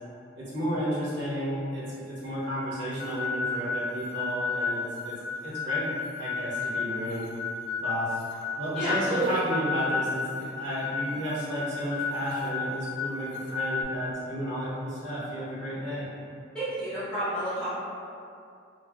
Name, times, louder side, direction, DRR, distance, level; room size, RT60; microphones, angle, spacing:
voice 1, 0.4-5.9 6.2-7.3 7.8-8.2 8.6-16.1, equal, 70° right, -9 dB, 1.0 m, -32 dB
sound 1, 3.0-13.8, left 5 dB, 55° left, 0.4 m, -33 dB
voice 2, 8.7-9.4 16.5-17.7, right 1 dB, 5° left, -15 dB, 1.2 m, -29 dB
3.5 x 2.2 x 2.2 m, 2.5 s
head